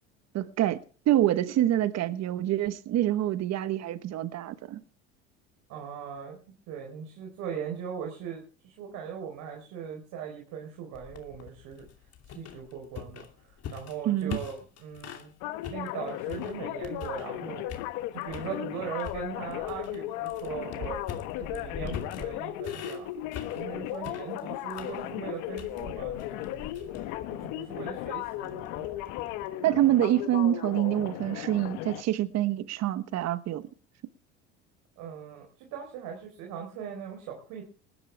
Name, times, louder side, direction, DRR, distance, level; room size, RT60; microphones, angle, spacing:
voice 1, 0.3-4.8 14.0-14.4 29.6-33.7, right 13 dB, 50° right, 1.3 m, -26 dB
voice 2, 5.7-6.4 6.7-11.9 12.2-15.3 15.7-17.8 18.1-21.0 21.4-23.1 23.5-26.9 27.3-28.9 35.0-37.6, right 7 dB, 65° right, 4.2 m, -39 dB
sound 1, 10.9-15.3 15.6-17.4 17.7-18.5 19.0-29.5, left 8 dB, 50° left, 2.8 m, -43 dB
sound 2, 15.4-32.0, left 13 dB, 70° left, 1.4 m, -36 dB
19.5 x 13.0 x 3.5 m
hypercardioid pair, 85°, 33 cm